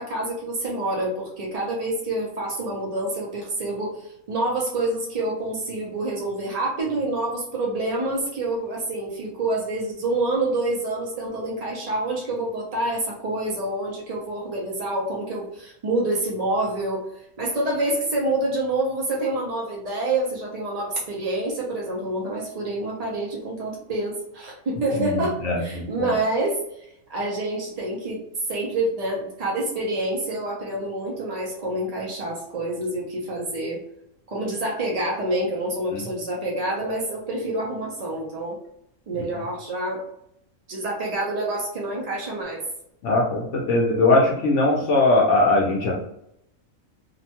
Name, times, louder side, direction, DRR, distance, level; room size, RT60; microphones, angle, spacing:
voice 1, 0.0-17.0 17.4-28.2 28.5-33.8 34.3-38.6 39.1-40.0 40.7-42.6, right 2 dB, 60° right, -3 dB, 0.4 m, -27 dB
voice 2, 25.0-26.1 35.9-36.0 43.0-46.0, left 2 dB, 70° left, -2 dB, 0.9 m, -20 dB
2.7 x 2.1 x 2.8 m, 0.75 s
omnidirectional pair, 1.4 m